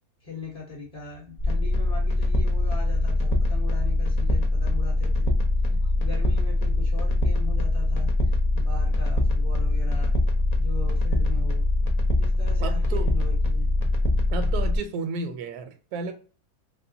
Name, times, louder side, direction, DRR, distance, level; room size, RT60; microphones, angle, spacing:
voice 1, 0.2-5.3 6.0-10.1 10.6-11.6 12.2-13.7, left 3 dB, 30° left, 0.8 m, -40 dB
sound 1, 1.4-14.8, left 2 dB, 65° left, 0.4 m, -23 dB
voice 2, 12.6-13.1 14.3-16.1, right 4 dB, 75° right, 1.1 m, -33 dB
3.2 x 2.9 x 2.6 m
omnidirectional pair, 1.7 m